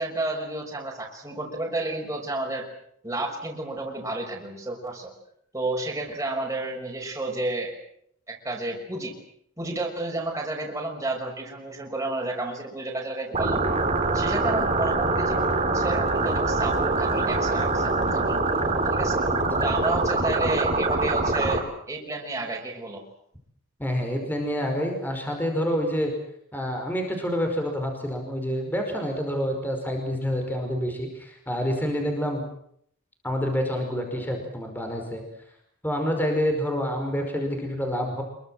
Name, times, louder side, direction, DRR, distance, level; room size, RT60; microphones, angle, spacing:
voice 1, 0.0-2.7 3.0-5.1 5.5-7.8 8.3-9.1 9.6-13.6 14.1-18.4 18.9-19.2 19.6-23.0, right 2 dB, 15° right, -1 dB, 6.0 m, -31 dB
sound 1, 13.3-21.6, right 3 dB, 30° right, 4.3 m, -24 dB
voice 2, 19.3-19.6 23.8-26.1 26.5-32.4 33.2-35.2 35.8-38.2, equal, 10° left, 3 dB, 5.2 m, -27 dB
26.5 x 23.5 x 7.7 m, 0.70 s
head